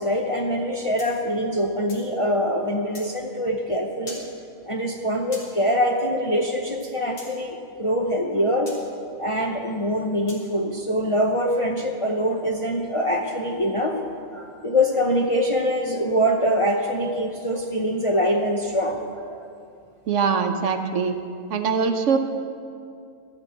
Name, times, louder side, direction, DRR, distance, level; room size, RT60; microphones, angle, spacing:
voice 1, 0.0-4.2 4.6-8.8 9.2-14.0 14.3-19.4, equal, 35° left, 0 dB, 0.6 m, -24 dB
sound 1, 1.0-2.1 2.9-3.1 4.1-4.3 5.3-5.5 7.2-7.3 8.7-8.8 10.3-10.5, left 1 dB, 70° left, 2.6 m, -41 dB
voice 2, 20.1-21.2 21.5-22.2, right 6 dB, 65° right, 7 dB, 1.0 m, -22 dB
13.0 x 6.0 x 7.8 m, 2.4 s
omnidirectional pair, 1.4 m